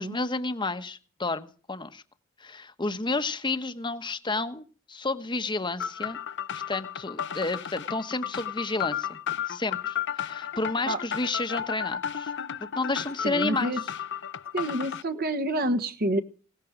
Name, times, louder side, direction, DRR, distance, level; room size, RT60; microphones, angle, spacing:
voice 1, 0.0-2.0 2.4-6.2 6.7-9.2 9.5-12.3 12.6-13.7, left 3 dB, 20° left, 10 dB, 1.1 m, -31 dB
sound 1, 5.8-15.0, left 8 dB, 55° left, 0.7 m, -33 dB
voice 2, 13.2-13.8 14.5-16.2, right 1 dB, 45° right, 9 dB, 1.3 m, -28 dB
18.0 x 14.5 x 5.1 m, 0.39 s
head